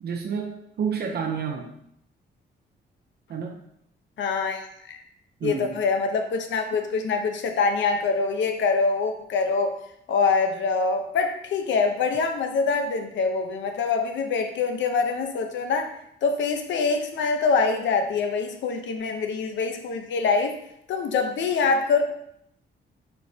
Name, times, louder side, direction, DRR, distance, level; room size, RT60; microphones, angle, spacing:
voice 1, 0.0-1.7 3.3-3.6 5.4-5.8, right 6 dB, 55° right, 2 dB, 0.7 m, -30 dB
voice 2, 4.2-5.0 5.4-9.7 10.1-15.9 16.2-20.5 20.9-22.0, left 4 dB, 80° left, 5 dB, 0.9 m, -24 dB
8.7 x 4.6 x 2.8 m, 0.74 s
wide cardioid pair, 155°, 19 cm